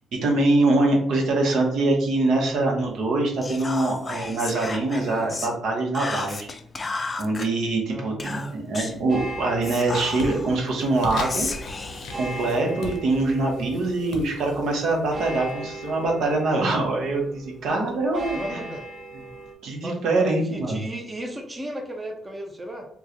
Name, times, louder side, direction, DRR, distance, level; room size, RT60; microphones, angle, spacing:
voice 1, 0.1-6.5 7.2-11.5 12.1-18.6 19.6-20.8, right 2 dB, 75° right, 0 dB, 0.9 m, -24 dB
Whispering, 3.4-5.5 5.9-7.5 8.2-9.0 9.6-10.5 11.1-13.0, left 3 dB, 30° left, 0.4 m, -33 dB
voice 2, 7.9-8.6 17.7-18.8 19.8-22.9, right 1 dB, 20° right, 2 dB, 0.6 m, -34 dB
sound 1, 8.9-9.3 9.7-16.3, left 3 dB, 80° left, 0.6 m, -40 dB
sound 2, 9.1-19.5, right 2 dB, 40° right, 1.0 m, -39 dB
3.0 x 2.3 x 3.7 m, 0.66 s
cardioid pair, 90°, 0 cm